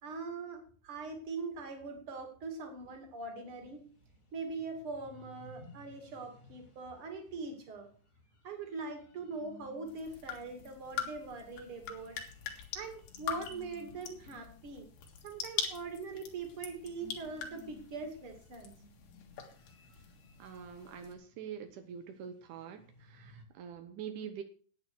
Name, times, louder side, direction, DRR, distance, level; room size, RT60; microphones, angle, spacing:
voice 1, 0.0-3.8 4.3-7.9 8.4-12.2 12.7-14.9 15.2-18.7, right 4 dB, 35° right, 5 dB, 2.5 m, -42 dB
sound 1, 3.5-23.4, left 2 dB, 25° left, 1.8 m, -60 dB
sound 2, 9.9-21.1, left 8 dB, 70° left, 3.9 m, -43 dB
voice 2, 20.4-24.4, right 8 dB, 90° right, 7 dB, 1.7 m, -45 dB
11.0 x 9.4 x 6.2 m, 0.42 s
omnidirectional pair, 5.2 m